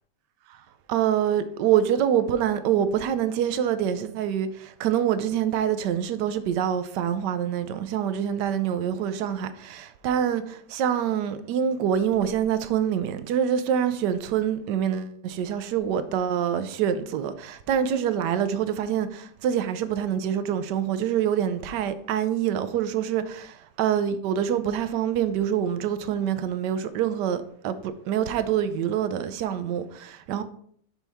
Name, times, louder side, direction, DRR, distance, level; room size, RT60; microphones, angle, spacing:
voice 1, 0.9-30.4, right 9 dB, 75° right, 1.2 m, -26 dB
6.1 x 5.5 x 3.4 m
omnidirectional pair, 1.9 m